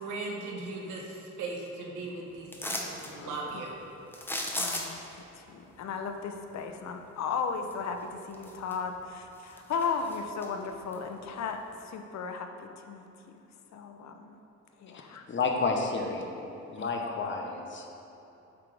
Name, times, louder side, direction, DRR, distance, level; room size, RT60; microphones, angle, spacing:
voice 1, 0.0-3.8, right 3 dB, 90° right, -1 dB, 1.2 m, -38 dB
sound 1, 2.5-3.1 4.1-5.2 7.7-7.8 8.3-9.0 9.4-10.5 10.9-11.0, left 1 dB, 5° left, 0.8 m, -35 dB
voice 2, 3.2-3.7 4.6-5.0 5.3-13.4 13.7-14.4 14.8-15.3 16.8-17.0, left 5 dB, 65° left, 6 dB, 0.7 m, -36 dB
voice 3, 15.3-16.2 16.7-17.9, left 4 dB, 40° left, 2 dB, 1.0 m, -30 dB
8.2 x 5.9 x 3.4 m, 3.0 s
cardioid pair, 90°, 30 cm